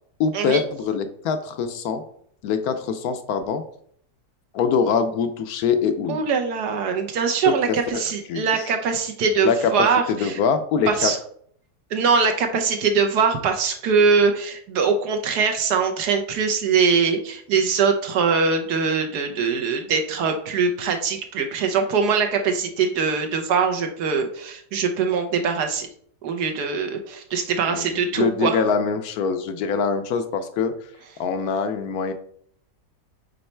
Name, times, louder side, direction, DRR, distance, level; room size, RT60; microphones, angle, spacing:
voice 1, 0.2-2.0 2.4-3.6 4.5-6.2 7.5-7.6 7.9-8.0 8.3-8.7 9.4-9.7 10.1-11.1 27.7-30.7 31.2-32.1, left 6 dB, 70° left, 9 dB, 1.0 m, -23 dB
voice 2, 6.1-10.4 10.9-11.2 11.9-25.9 26.2-28.6, right 5 dB, 70° right, 4 dB, 1.3 m, -22 dB
5.4 x 4.1 x 4.4 m, 0.63 s
omnidirectional pair, 1.9 m